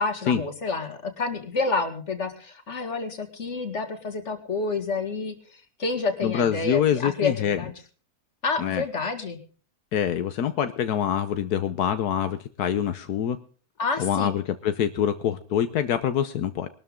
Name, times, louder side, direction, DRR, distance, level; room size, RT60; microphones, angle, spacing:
voice 1, 0.0-7.7 8.4-9.4 13.8-14.3, left 4 dB, 50° left, 7 dB, 2.5 m, -29 dB
voice 2, 6.2-7.6 8.6-8.8 9.9-13.4 14.0-16.7, left 9 dB, 80° left, 10 dB, 1.4 m, -25 dB
21.5 x 12.5 x 3.7 m, 0.39 s
omnidirectional pair, 1.6 m